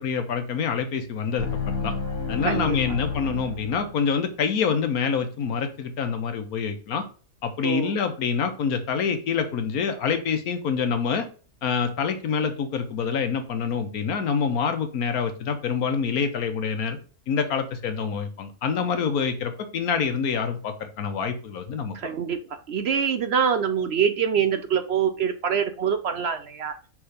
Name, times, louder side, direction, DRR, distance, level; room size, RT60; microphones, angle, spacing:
voice 1, 0.0-1.9 2.3-7.0 7.4-11.3 11.6-17.0 17.3-22.1, left 6 dB, 90° left, 8 dB, 1.5 m, -26 dB
sound 1, 1.4-4.2, left 4 dB, 15° right, 1.7 m, -30 dB
voice 2, 2.4-2.8 7.6-8.0 21.9-26.8, right 7 dB, 60° right, 9 dB, 0.7 m, -25 dB
6.1 x 3.7 x 5.0 m, 0.38 s
omnidirectional pair, 1.5 m